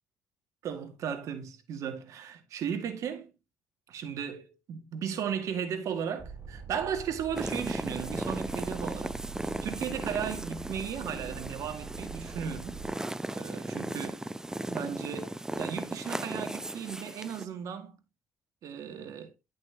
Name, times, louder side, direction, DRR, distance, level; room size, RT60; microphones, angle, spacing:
voice 1, 0.6-3.3 3.9-9.2 9.4-12.8 13.3-14.2 14.7-18.0 18.6-19.3, right 8 dB, 70° right, 2.0 m, -36 dB
sound 1, 6.2-12.9, right 5 dB, 30° right, 4.3 m, -44 dB
sound 2, 7.3-17.5, right 1 dB, 10° right, 0.6 m, -36 dB
11.0 x 6.1 x 2.9 m
cardioid pair, 75°, 6 cm